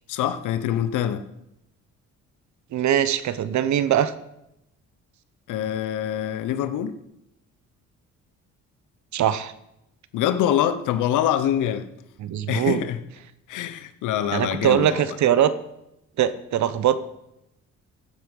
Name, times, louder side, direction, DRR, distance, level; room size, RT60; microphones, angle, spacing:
voice 1, 0.1-1.2 5.5-6.9 10.1-11.9 12.5-13.0 13.5-15.2, left 10 dB, 90° left, 1.0 m, -25 dB
voice 2, 2.7-4.1 9.1-9.5 12.2-12.8 14.3-15.5 16.2-16.9, right 10 dB, 70° right, 1.0 m, -21 dB
14.5 x 8.0 x 5.4 m
cardioid pair, 90°, 30 cm